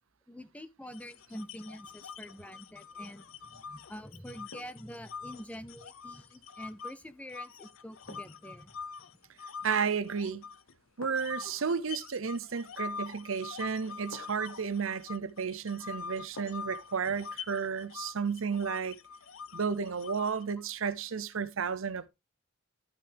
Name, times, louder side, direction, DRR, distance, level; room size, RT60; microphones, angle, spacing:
voice 1, 0.3-8.7 20.6-20.7, equal, 5° left, 0.5 m, -46 dB
sound 1, 0.9-6.9 7.3-10.7 11.2-20.5, left 5 dB, 70° left, 0.6 m, -45 dB
Glass cup pick up put down on wood table, 2.9-3.3 4.5-4.9 7.0-7.2 8.1-8.5 9.9-10.3 11.0-11.5 13.1-13.2 14.1-14.6 16.4-16.8 17.2-17.3, left 3 dB, 85° left, 1.6 m, -51 dB
voice 2, 9.6-10.5 11.0-19.0 19.5-22.1, right 6 dB, 70° right, 0.7 m, -32 dB
12.0 x 5.6 x 3.4 m
head